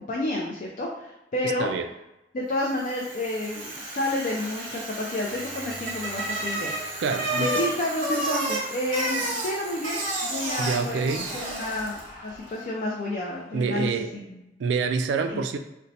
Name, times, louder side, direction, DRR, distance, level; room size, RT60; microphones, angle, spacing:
voice 1, 0.0-1.7 2.3-6.7 7.3-14.4 15.3-15.4, left 1 dB, 45° left, -2 dB, 0.4 m, -30 dB
voice 2, 1.4-1.9 7.0-7.6 10.6-11.3 13.5-14.1 14.6-15.6, right 5 dB, 85° right, 8 dB, 0.3 m, -27 dB
Bicycle, 2.7-12.1, right 2 dB, 50° right, 0.9 m, -32 dB
sound 1, 2.9-13.8, left 1 dB, 60° left, 0.8 m, -47 dB
sound 2, 5.2-8.4, left 1 dB, 10° right, 0.7 m, -52 dB
2.6 x 2.1 x 4.0 m, 0.95 s
head